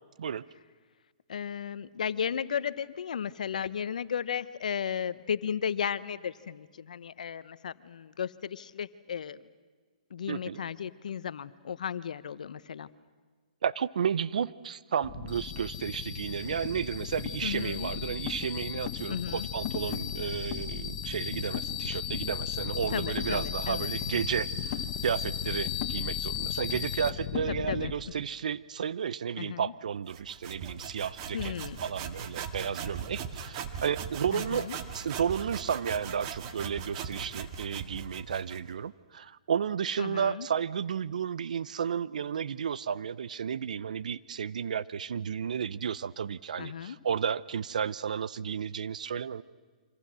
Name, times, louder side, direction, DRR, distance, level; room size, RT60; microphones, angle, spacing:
voice 1, 1.3-9.4 10.1-12.9 17.4-17.9 19.1-19.5 22.9-23.9 27.5-28.1 29.4-29.7 31.3-31.8 34.3-34.8 40.0-40.5 46.6-47.0, left 8 dB, 75° left, 15 dB, 0.9 m, -35 dB
voice 2, 10.3-10.6 13.6-31.5 31.8-49.4, right 7 dB, 75° right, 18 dB, 0.7 m, -32 dB
sound 1, 15.0-27.9, left 9 dB, 40° left, 1.6 m, -35 dB
sound 2, 30.1-38.7, right 7 dB, 40° right, 2.0 m, -40 dB
27.5 x 25.5 x 6.3 m, 1.5 s
hypercardioid pair, 135°, 4 cm